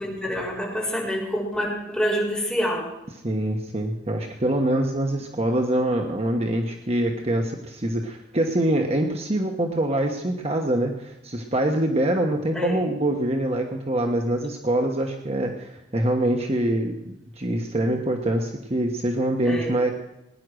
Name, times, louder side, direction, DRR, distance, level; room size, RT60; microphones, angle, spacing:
voice 1, 0.0-2.9 12.5-12.8 19.4-19.9, equal, 5° left, -5 dB, 4.5 m, -27 dB
voice 2, 3.2-19.9, right 1 dB, 35° right, 3 dB, 1.2 m, -24 dB
19.0 x 10.5 x 6.4 m, 0.92 s
head